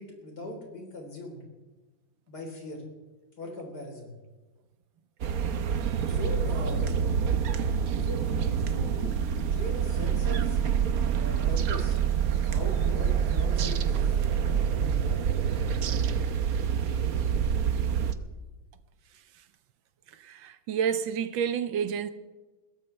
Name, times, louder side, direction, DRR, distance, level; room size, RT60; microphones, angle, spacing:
voice 1, 0.0-1.4 2.3-2.8 3.4-4.1 6.1-6.8 8.0-10.6 11.1-12.0 12.3-14.3, left 1 dB, 55° left, 4.3 m, -40 dB
sound 1, 5.2-18.1, right 7 dB, 60° right, 1.1 m, -26 dB
voice 2, 20.2-22.1, right 7 dB, 75° right, 1.6 m, -29 dB
22.0 x 16.5 x 3.3 m
omnidirectional pair, 2.1 m